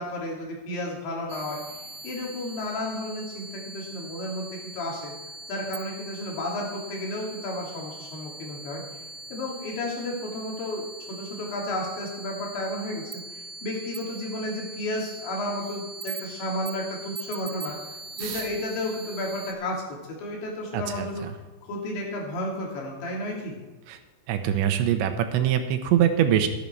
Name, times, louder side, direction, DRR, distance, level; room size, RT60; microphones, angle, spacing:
voice 1, 0.0-5.1 5.5-8.8 9.3-21.2 21.6-23.6, left 1 dB, 70° left, -2 dB, 5.2 m, -32 dB
sound 1, 1.3-19.5, right 8 dB, 65° right, 2.0 m, -40 dB
voice 2, 20.7-21.1 23.9-24.0 24.3-26.5, right 10 dB, 80° right, 8 dB, 3.0 m, -23 dB
13.0 x 12.5 x 4.6 m, 1.2 s
omnidirectional pair, 5.4 m